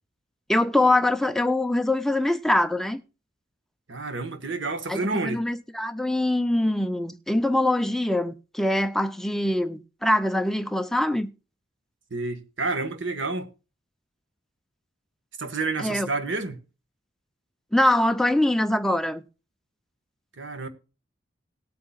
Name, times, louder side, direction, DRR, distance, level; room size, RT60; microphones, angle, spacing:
voice 1, 0.5-3.0 4.9-11.3 15.8-16.1 17.7-19.2, left 1 dB, ahead, 0.6 m, -23 dB
voice 2, 3.9-5.4 12.1-13.5 15.4-16.6 20.4-20.7, right 3 dB, 90° right, 1.5 m, -29 dB
18.5 x 8.5 x 2.4 m
head